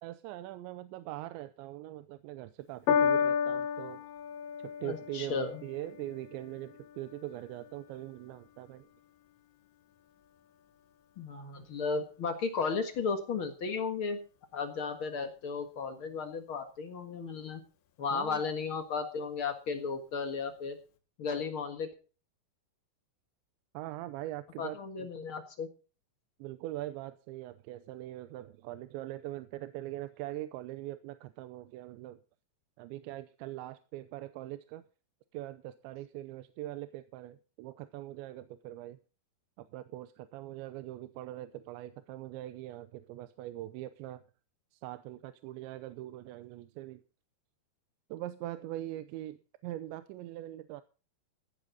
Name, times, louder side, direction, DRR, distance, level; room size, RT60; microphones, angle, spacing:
voice 1, 0.0-4.1 4.6-8.9 18.1-18.4 23.7-25.1 26.4-32.2 32.8-34.8 35.3-39.0 39.6-44.2 44.7-47.0 48.1-50.8, right 15 dB, 85° right, 12 dB, 3.1 m, -42 dB
Piano, 2.9-9.5 10.3-10.4, left 7 dB, 85° left, 3.9 m, -34 dB
voice 2, 4.8-5.6 11.2-14.2 14.5-17.6 18.0-20.8 21.2-21.9 24.6-25.7, left 5 dB, 65° left, 6 dB, 1.3 m, -34 dB
15.5 x 13.0 x 4.0 m, 0.36 s
omnidirectional pair, 5.1 m